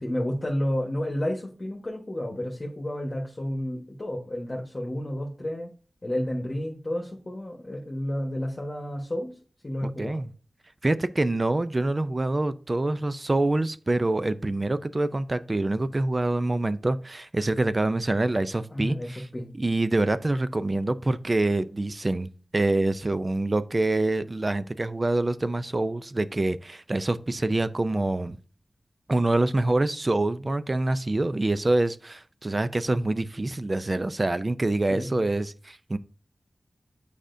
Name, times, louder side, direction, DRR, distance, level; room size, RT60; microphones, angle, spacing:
voice 1, 0.0-5.7 6.0-9.3 9.6-10.2 18.7-19.5 34.9-35.2, left 1 dB, 30° left, 1.2 m, -31 dB
voice 2, 9.8-10.3 10.8-19.3 19.6-28.4 29.1-36.0, right 2 dB, 30° right, 0.4 m, -26 dB
8.8 x 4.9 x 2.6 m
wide cardioid pair, 95°, 0 cm